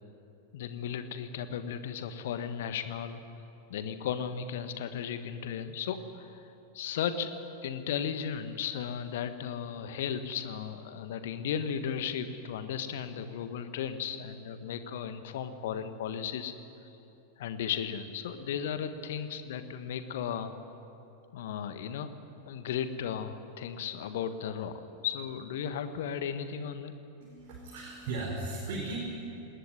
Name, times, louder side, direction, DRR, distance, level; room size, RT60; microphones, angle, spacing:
voice 1, 0.5-3.2 3.7-7.3 7.6-16.5 17.4-20.5 21.3-22.1 22.5-24.7 25.0-26.9, left 8 dB, 55° left, 10 dB, 1.5 m, -35 dB
voice 2, 27.2-29.0, right 3 dB, 45° right, -4 dB, 5.1 m, -37 dB
20.0 x 19.5 x 9.7 m, 3.0 s
figure-of-eight pair, 90°, 0 cm